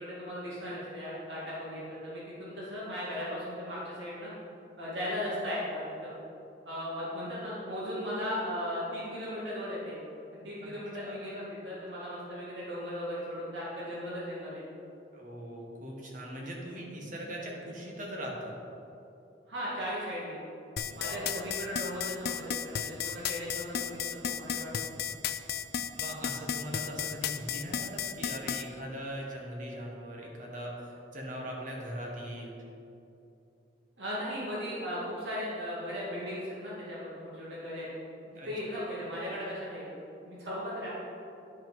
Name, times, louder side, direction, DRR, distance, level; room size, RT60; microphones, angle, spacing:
voice 1, 0.0-4.3 4.8-6.1 6.7-10.0 10.4-14.6 19.5-20.4 21.0-24.7 34.0-37.9 38.5-39.9 40.3-40.9, equal, 80° right, -7 dB, 2.3 m, -37 dB
voice 2, 15.1-18.6 20.8-21.4 26.0-32.5 38.4-38.9, equal, 45° right, -1 dB, 1.6 m, -40 dB
sound 1, 20.8-28.6, left 8 dB, 60° left, 0.4 m, -33 dB
10.0 x 5.5 x 5.5 m, 2.8 s
head